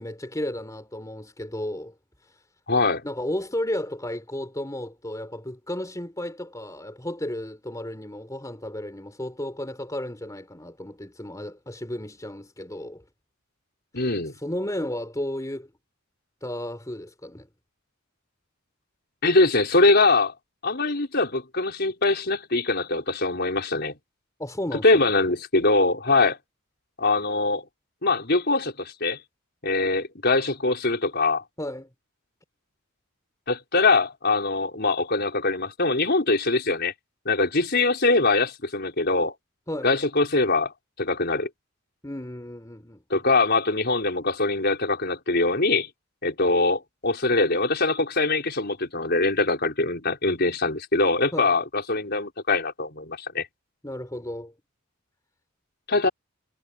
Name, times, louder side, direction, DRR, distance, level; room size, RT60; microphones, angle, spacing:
voice 1, 0.0-1.9 3.0-13.0 14.4-15.7 16.4-17.5 24.4-25.1 31.6-31.9 39.7-39.9 42.0-43.3 51.3-51.5 53.8-54.5, left 1 dB, 15° left, 3.9 m, -33 dB
voice 2, 2.7-3.0 13.9-14.4 19.2-20.3 20.6-23.9 24.8-26.4 27.0-27.7 28.0-29.2 29.6-31.4 33.5-36.9 37.3-39.4 39.8-41.5 43.1-45.9 46.2-53.5 55.9-56.1, left 3 dB, 50° left, 5.3 m, -23 dB
head